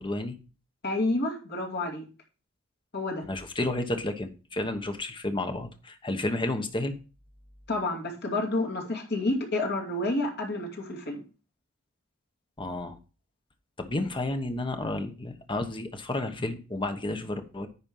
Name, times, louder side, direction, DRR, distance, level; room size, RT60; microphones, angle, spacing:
voice 1, 0.0-0.3 3.2-7.0 12.6-13.0 13.8-17.7, left 2 dB, 25° left, 6 dB, 1.1 m, -31 dB
voice 2, 0.8-2.0 2.9-3.2 7.7-11.2, left 2 dB, 55° left, 1 dB, 2.5 m, -29 dB
10.0 x 4.4 x 5.4 m, 0.35 s
head